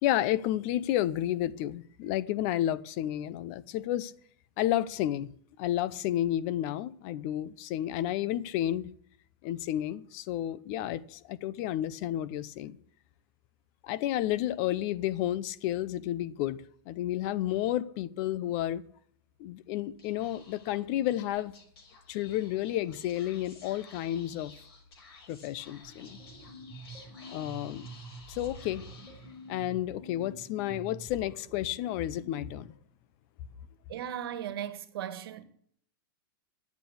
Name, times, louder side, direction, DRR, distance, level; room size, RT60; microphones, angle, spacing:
voice 1, 0.0-4.1 4.6-5.3 5.6-8.9 9.4-12.8 13.8-18.8 19.4-21.5 22.1-24.5 25.3-26.2 27.3-27.9 28.3-28.8 29.5-32.7, left 13 dB, 40° left, 0.7 m, -31 dB
Speech / Whispering, 19.9-29.7, left 4 dB, 80° left, 6.0 m, -54 dB
sound 1, 25.6-32.7, right 1 dB, 5° right, 4.2 m, -48 dB
voice 2, 33.9-35.4, right 10 dB, 75° right, 1.5 m, -37 dB
11.5 x 8.3 x 8.5 m
supercardioid pair, 150°, 13 cm